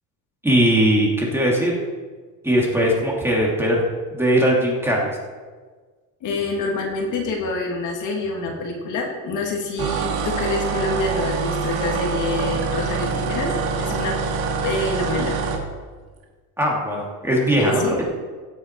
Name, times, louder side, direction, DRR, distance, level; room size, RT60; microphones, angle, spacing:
voice 1, 0.4-1.7 2.4-3.8 4.1-5.1 16.6-18.0, equal, 5° right, -3 dB, 2.8 m, -19 dB
voice 2, 6.2-13.5 13.8-14.2 14.6-15.4 17.6-18.0, left 3 dB, 50° left, 1 dB, 2.5 m, -26 dB
sound 1, 9.8-15.6, right 5 dB, 65° right, 2.3 m, -25 dB
16.0 x 8.0 x 4.7 m, 1.5 s
cardioid pair, 125°, 39 cm